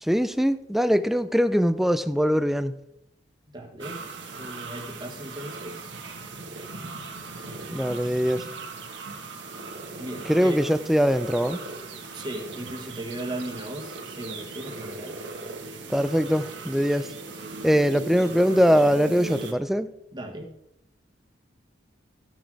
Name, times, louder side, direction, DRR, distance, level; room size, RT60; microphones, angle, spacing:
voice 1, 0.0-2.8 7.7-8.5 10.3-11.6 15.9-17.1 17.6-19.9, equal, ahead, 12 dB, 0.4 m, -22 dB
voice 2, 3.5-4.0 4.3-5.9 10.0-10.6 12.1-15.2 20.1-20.5, right 1 dB, 25° right, 3 dB, 1.4 m, -37 dB
sound 1, 3.8-19.5, right 3 dB, 75° right, 1.4 m, -38 dB
14.0 x 6.2 x 4.7 m, 0.80 s
head